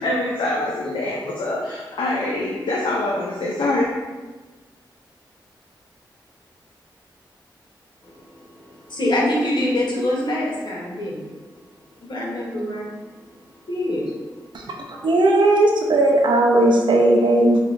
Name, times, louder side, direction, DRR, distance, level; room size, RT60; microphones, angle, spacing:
voice 1, 0.0-3.8, left 2 dB, 85° left, -2 dB, 0.5 m, -24 dB
voice 2, 8.0-11.2 12.0-12.9 13.7-14.1 14.9-15.1, left 1 dB, 65° left, -4 dB, 1.1 m, -25 dB
voice 3, 15.0-17.6, right 2 dB, 70° right, 0 dB, 0.5 m, -16 dB
5.4 x 2.3 x 2.5 m, 1.3 s
cardioid pair, 60°, 8 cm